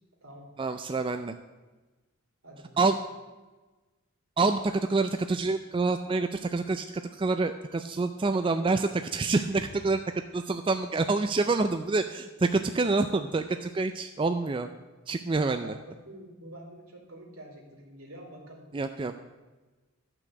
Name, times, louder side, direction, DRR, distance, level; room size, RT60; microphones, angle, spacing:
voice 1, 0.6-1.3 2.8-3.0 4.4-6.8 7.1-10.0 10.3-14.7 15.1-15.7 18.7-19.1, right 3 dB, 25° right, 8 dB, 0.3 m, -27 dB
voice 2, 2.4-2.9 15.6-18.7, right 1 dB, 70° right, 0 dB, 3.0 m, -47 dB
sound 1, 9.5-10.5, equal, 40° left, 1.8 m, -49 dB
12.5 x 5.9 x 7.8 m, 1.2 s
head